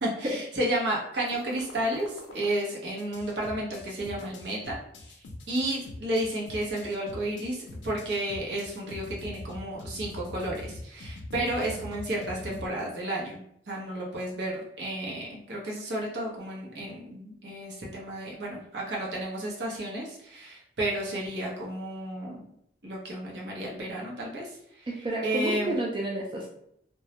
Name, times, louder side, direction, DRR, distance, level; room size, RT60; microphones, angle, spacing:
voice 1, 0.0-4.8 5.5-13.4 13.7-22.5 22.8-24.9 25.2-25.7, right 1 dB, 70° right, -4 dB, 0.7 m, -32 dB
sound 1, 1.3-2.5 3.0-12.6, left 2 dB, 85° left, 0.4 m, -44 dB
voice 2, 24.9-26.5, right 1 dB, 30° right, -3 dB, 0.3 m, -31 dB
2.2 x 2.0 x 2.8 m, 0.73 s
head